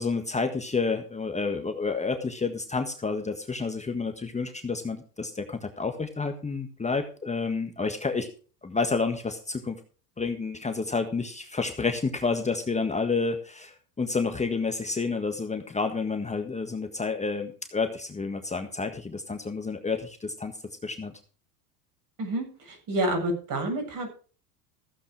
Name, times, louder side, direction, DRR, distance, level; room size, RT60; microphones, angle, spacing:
voice 1, 0.0-8.3 8.6-9.8 10.2-20.5 20.8-21.1, left 4 dB, 15° left, 6 dB, 1.5 m, -29 dB
voice 2, 22.2-24.1, right 1 dB, 45° right, 4 dB, 7.7 m, -29 dB
15.5 x 8.2 x 4.9 m, 0.39 s
hypercardioid pair, 85°, 46 cm